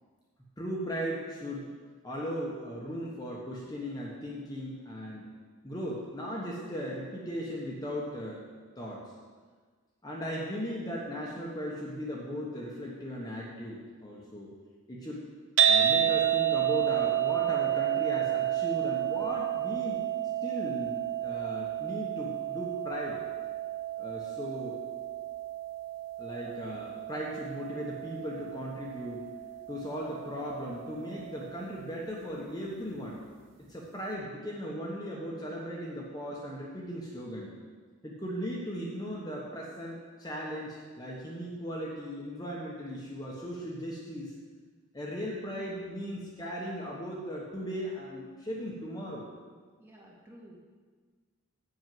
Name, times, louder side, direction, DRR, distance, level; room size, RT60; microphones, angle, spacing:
voice 1, 0.6-1.7 2.0-5.3 5.6-8.4 8.8-9.0 10.0-14.5 14.9-15.2 15.7-20.0 20.4-23.2 24.0-24.8 26.2-29.3 29.7-33.2 33.7-37.5 38.0-44.3 44.9-49.3, equal, 20° left, -4 dB, 1.2 m, -37 dB
sound 1, 15.6-31.8, right 10 dB, 60° right, 1.0 m, -31 dB
voice 2, 49.8-50.7, right 1 dB, 10° right, -3 dB, 1.6 m, -53 dB
8.0 x 6.2 x 7.7 m, 1.5 s
head